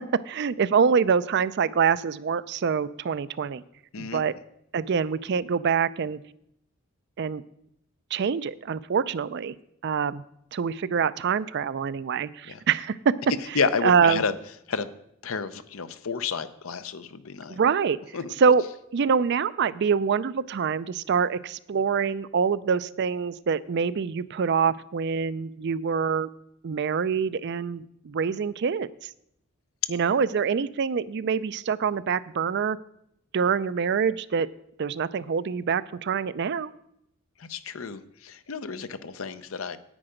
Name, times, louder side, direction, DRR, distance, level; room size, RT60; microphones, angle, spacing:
voice 1, 0.0-3.6 4.0-4.3 4.7-6.2 7.2-7.4 8.1-9.5 9.8-10.2 10.5-13.2 13.8-14.2 17.5-18.0 18.4-18.6 18.9-26.3 26.6-28.9 29.9-32.8 33.3-34.5 34.8-36.7, right 6 dB, 55° right, 16 dB, 0.4 m, -25 dB
voice 2, 13.5-14.3 14.7-14.9 15.2-17.6 18.1-18.3 37.4-39.8, left 5 dB, 75° left, 12 dB, 0.7 m, -30 dB
9.9 x 8.9 x 5.1 m, 0.75 s
head